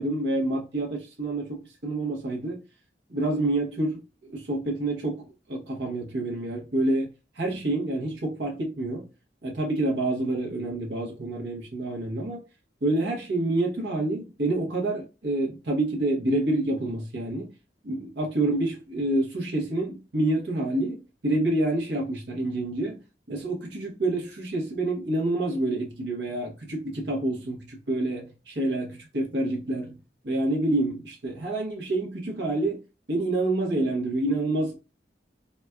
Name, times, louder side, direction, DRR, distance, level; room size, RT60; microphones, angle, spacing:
voice 1, 0.0-2.6 3.1-7.1 7.3-9.0 9.4-12.4 12.8-17.5 17.8-23.0 23.3-30.0 30.2-32.8 33.1-34.8, right 2 dB, 70° right, 0.9 m, -28 dB
4.1 x 2.2 x 2.2 m
head